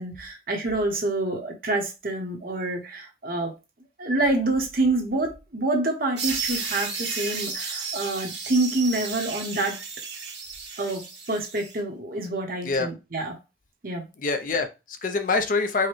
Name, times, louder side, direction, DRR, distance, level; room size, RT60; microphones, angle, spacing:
voice 1, 0.0-3.5 4.0-9.8 10.8-13.3 13.8-14.0, right 2 dB, 50° right, 0.9 m, -27 dB
sound 1, 6.2-11.8, right 5 dB, 65° right, 1.1 m, -33 dB
voice 2, 14.2-15.9, left 3 dB, 45° left, 0.5 m, -25 dB
4.7 x 2.2 x 3.0 m
head